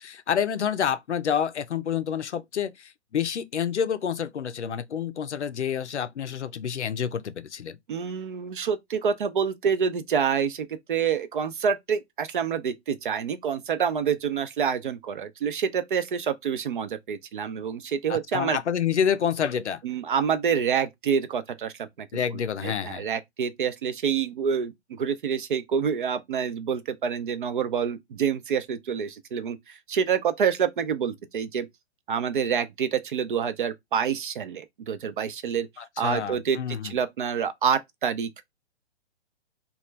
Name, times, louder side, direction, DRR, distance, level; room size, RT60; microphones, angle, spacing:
voice 1, 0.0-7.8 18.1-19.8 22.1-23.0 35.8-37.0, left 8 dB, 80° left, 0.5 m, -28 dB
voice 2, 7.9-18.6 19.8-22.1 22.6-31.7 32.1-35.7 36.0-38.4, right 7 dB, 50° right, 0.5 m, -27 dB
2.9 x 2.3 x 3.1 m
figure-of-eight pair, 125°, 34 cm